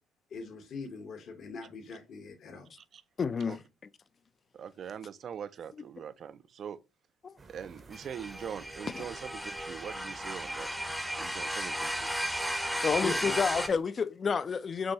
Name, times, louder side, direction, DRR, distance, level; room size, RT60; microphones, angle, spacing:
voice 1, 0.3-2.7 13.0-13.3, left 3 dB, 60° left, 0.9 m, -40 dB
voice 2, 3.2-3.6 7.2-7.3 8.9-9.0 12.8-14.9, left 5 dB, 40° left, 0.3 m, -29 dB
voice 3, 4.5-6.8 7.5-10.7 11.2-12.1, right 8 dB, 55° right, 0.4 m, -42 dB
sound 1, 7.4-13.8, right 3 dB, 40° right, 0.8 m, -54 dB
sound 2, 7.9-13.7, equal, ahead, 0.6 m, -34 dB
6.1 x 2.2 x 2.7 m
supercardioid pair, 70°, 0 cm